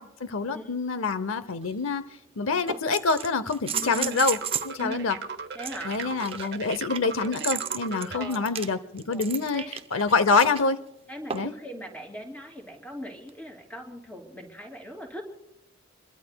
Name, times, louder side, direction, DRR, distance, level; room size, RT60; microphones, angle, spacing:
voice 1, 0.0-2.0 2.4-5.2 5.8-10.8 11.3-11.5, left 4 dB, 75° left, 14 dB, 0.7 m, -26 dB
sound 1, 1.6-1.7 2.7-4.8 5.6-10.6 11.3-11.6 13.3-13.4, right 8 dB, 25° right, 0.6 m, -34 dB
voice 2, 3.7-4.2 4.8-5.1 5.5-6.0 6.4-6.5 8.1-8.6 9.1-9.2 9.5-9.7 11.1-15.2, equal, 5° left, 2 dB, 3.1 m, -39 dB
sound 2, 3.7-8.3, right 5 dB, 55° right, 1.0 m, -37 dB
27.0 x 22.0 x 2.3 m, 0.85 s
head